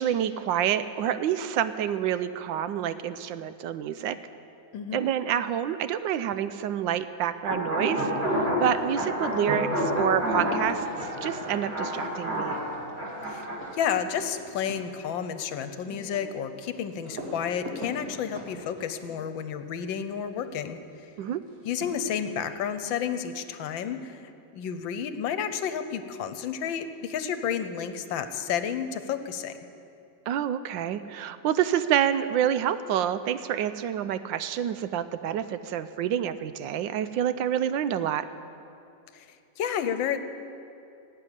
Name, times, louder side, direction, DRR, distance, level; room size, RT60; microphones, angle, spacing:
voice 1, 0.0-4.2 4.9-12.6 21.2-21.4 30.3-38.3, right 10 dB, 80° right, 13 dB, 1.3 m, -28 dB
sound 1, 7.5-13.5, equal, 30° right, 3.9 m, -29 dB
sound 2, 8.3-8.9 9.2-20.2 21.4-22.6, equal, 50° right, 2.6 m, -45 dB
voice 2, 13.7-20.8 21.7-29.6 39.1-39.3 39.6-40.2, left 8 dB, 75° left, 10 dB, 1.5 m, -31 dB
17.0 x 8.5 x 9.9 m, 2.7 s
omnidirectional pair, 2.1 m